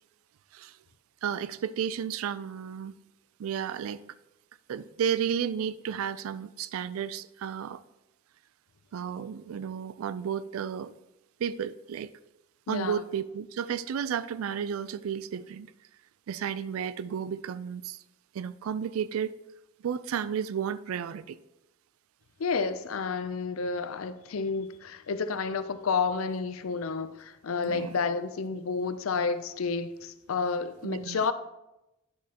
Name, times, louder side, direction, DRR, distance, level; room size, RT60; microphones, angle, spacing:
voice 1, 1.2-2.9 3.4-4.1 4.7-7.8 8.9-10.9 11.4-12.1 12.7-15.7 16.3-18.0 18.3-19.3 19.8-21.4 27.6-27.9 30.8-31.3, right 8 dB, 90° right, 0.3 m, -32 dB
voice 2, 12.7-13.0 22.4-31.3, left 4 dB, 80° left, 0.5 m, -30 dB
9.8 x 6.2 x 2.9 m
head